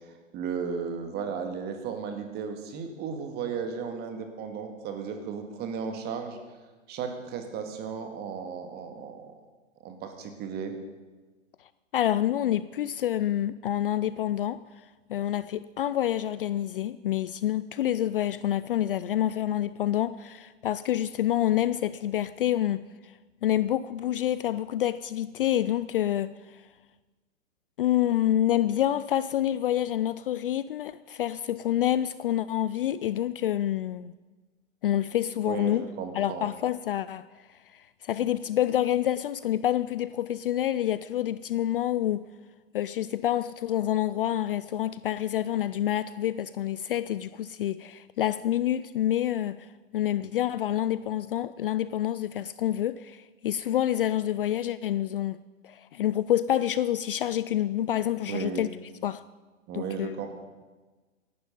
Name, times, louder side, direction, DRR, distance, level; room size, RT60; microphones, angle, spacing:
voice 1, 0.3-6.4 6.9-9.3 9.8-10.7 35.4-36.5 58.3-58.7 59.7-60.4, right 6 dB, 25° right, 1.9 m, -35 dB
voice 2, 11.9-14.6 15.1-23.1 23.4-26.6 27.8-34.1 34.8-35.9 36.1-37.3 37.7-42.2 42.7-55.4 55.6-58.7 59.0-59.2 59.7-60.1, left 12 dB, 50° left, 0.4 m, -27 dB
17.0 x 11.5 x 5.3 m
hypercardioid pair, 125°, 38 cm